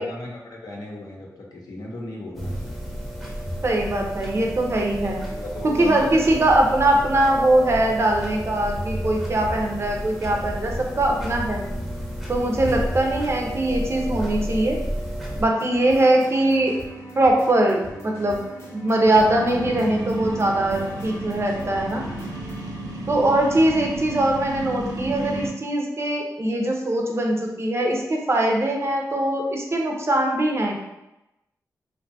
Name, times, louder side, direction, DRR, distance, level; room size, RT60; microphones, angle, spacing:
voice 1, 0.0-2.8 5.0-6.4 23.3-23.7, left 1 dB, 70° left, -2 dB, 0.7 m, -37 dB
clock ticking electirc buzz, 2.3-15.4, equal, ahead, 0.6 m, -31 dB
voice 2, 3.6-5.2 5.6-11.6 12.3-14.8 15.4-16.8 17.2-18.4 18.7-22.0 23.1-30.8, right 1 dB, 40° right, 1 dB, 0.5 m, -21 dB
sound 1, 15.6-22.7, equal, 40° left, 0.7 m, -40 dB
sound 2, 19.1-25.5, right 2 dB, 85° right, 0.5 m, -32 dB
2.6 x 2.2 x 2.6 m, 0.92 s
cardioid pair, 70°, 7 cm